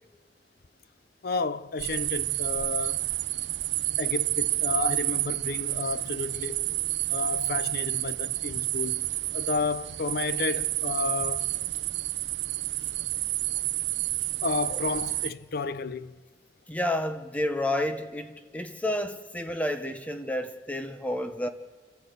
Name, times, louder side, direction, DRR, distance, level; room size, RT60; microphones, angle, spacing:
voice 1, 1.2-3.1 4.0-6.7 7.1-11.5 14.4-16.1, left 4 dB, 55° left, 0.6 m, -31 dB
sound 1, 1.8-15.3, right 17 dB, 80° right, 0.6 m, -30 dB
voice 2, 16.7-21.5, left 1 dB, 10° left, 0.9 m, -30 dB
30.0 x 13.0 x 8.1 m
head